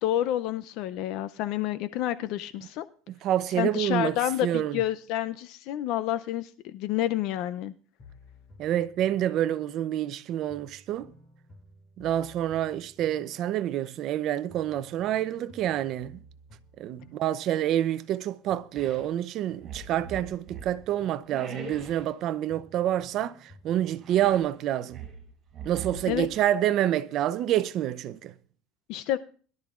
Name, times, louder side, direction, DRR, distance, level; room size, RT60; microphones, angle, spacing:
voice 1, 0.0-2.9 3.5-7.7 26.1-26.3 28.9-29.2, left 13 dB, 60° left, 0.5 m, -29 dB
voice 2, 3.2-4.2 4.4-4.8 8.6-11.1 12.0-16.2 16.8-25.0 25.6-28.3, right 12 dB, 45° right, 0.6 m, -27 dB
sound 1, 8.0-10.1 10.5-14.2 14.5-18.2 18.5-22.2 22.5-24.1, left 1 dB, 35° left, 2.7 m, -55 dB
sound 2, 18.7-19.1 19.6-20.8 21.3-22.2 24.0-24.5 24.9-26.4, right 4 dB, 30° right, 6.7 m, -42 dB
21.5 x 12.0 x 2.5 m
supercardioid pair, 140°, 0 cm